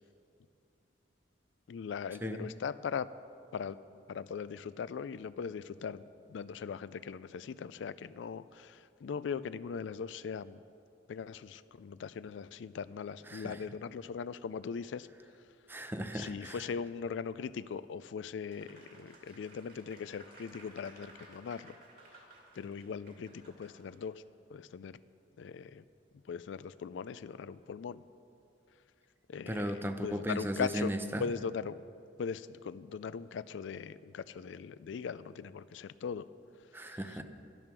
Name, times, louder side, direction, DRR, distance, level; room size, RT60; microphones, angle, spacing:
voice 1, 1.7-3.1 3.5-3.8 4.1-6.0 6.3-10.6 11.1-15.1 16.1-21.7 22.6-24.2 24.5-25.0 25.4-25.8 26.3-28.0 29.3-29.7 30.0-30.9 31.2-31.8 32.2-36.2, left 6 dB, 75° left, 16 dB, 0.3 m, -39 dB
voice 2, 13.2-13.6 15.7-16.7 29.5-31.3 36.7-37.2, equal, 10° right, 8 dB, 0.6 m, -36 dB
Applause, 18.5-24.1, right 2 dB, 50° right, 2.4 m, -57 dB
12.0 x 11.0 x 6.0 m, 2.5 s
head